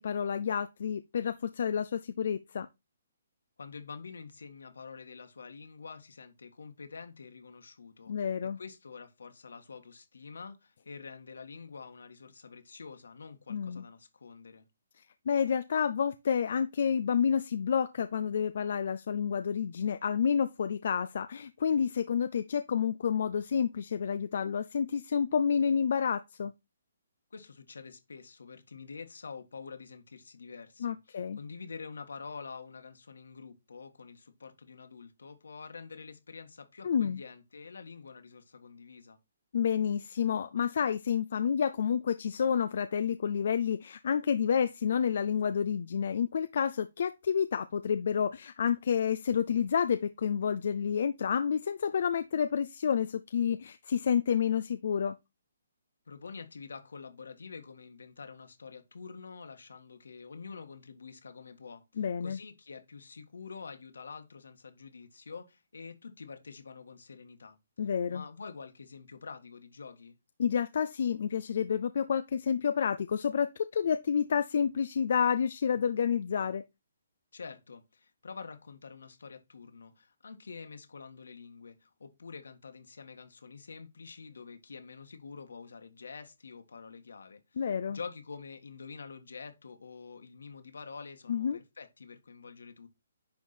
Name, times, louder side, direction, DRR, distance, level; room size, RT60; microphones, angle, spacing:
voice 1, 0.0-2.7 8.1-8.6 13.5-13.9 15.3-26.5 30.8-31.4 36.8-37.2 39.5-55.2 62.0-62.4 67.8-68.2 70.4-76.6 87.6-88.0 91.3-91.6, left 7 dB, 60° left, 0.5 m, -29 dB
voice 2, 3.6-14.6 27.3-39.2 56.1-70.2 77.3-92.9, left 5 dB, 85° left, 1.7 m, -47 dB
10.5 x 3.6 x 4.4 m
hypercardioid pair, 155°, 0 cm